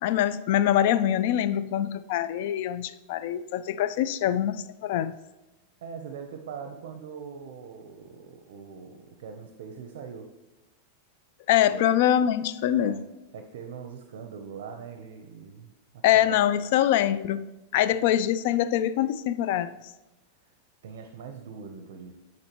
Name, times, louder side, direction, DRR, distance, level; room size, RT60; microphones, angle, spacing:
voice 1, 0.0-5.1 11.5-13.0 16.0-17.5 17.7-19.7, left 11 dB, 60° left, 14 dB, 0.4 m, -24 dB
voice 2, 5.8-10.3 11.7-11.9 12.8-13.0 13.3-16.5 20.8-22.2, right 6 dB, 75° right, 5 dB, 0.7 m, -42 dB
9.7 x 4.2 x 3.0 m, 1.0 s
supercardioid pair, 135°, 0 cm